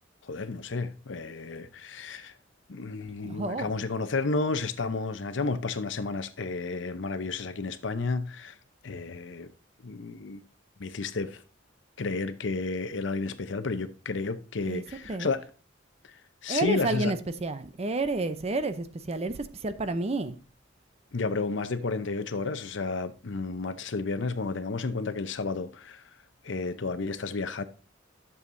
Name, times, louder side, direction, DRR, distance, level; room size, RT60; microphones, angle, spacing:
voice 1, 0.2-2.3 2.7-8.6 8.8-9.5 9.8-10.4 10.8-11.4 12.0-15.4 16.0-17.1 21.1-26.0 26.4-27.6, left 3 dB, 65° left, 0.7 m, -32 dB
voice 2, 3.2-3.7 14.7-14.8 15.1-15.3 16.5-20.3, right 2 dB, 30° right, 0.5 m, -30 dB
11.0 x 7.1 x 2.6 m
head